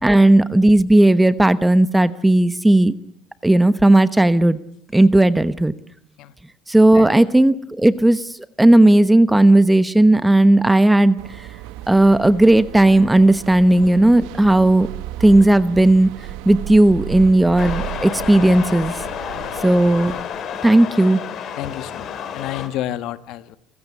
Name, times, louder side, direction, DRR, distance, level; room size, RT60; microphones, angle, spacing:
voice 1, 0.0-3.0 3.4-4.6 4.9-5.7 6.7-8.3 8.6-11.2 11.9-14.9 15.2-16.1 16.4-19.0 19.6-20.1 20.6-21.2, right 1 dB, 5° right, 14 dB, 1.1 m, -14 dB
sound 1, 11.2-20.2, right 14 dB, 90° right, 1.3 m, -34 dB
sound 2, 17.6-22.7, left 8 dB, 45° left, 3.2 m, -30 dB
voice 2, 21.6-23.6, left 13 dB, 65° left, 13 dB, 1.4 m, -30 dB
29.0 x 15.5 x 9.8 m, 0.67 s
cardioid pair, 140°, 0 cm